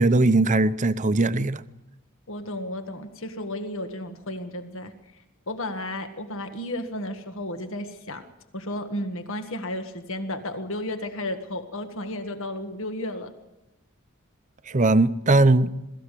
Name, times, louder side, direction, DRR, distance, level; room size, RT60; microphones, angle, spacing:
voice 1, 0.0-1.6 14.7-15.7, right 2 dB, 35° right, 0.7 m, -19 dB
voice 2, 2.3-4.9 5.5-8.2 8.5-13.3, left 1 dB, 65° left, 1.7 m, -33 dB
22.0 x 14.5 x 8.3 m
head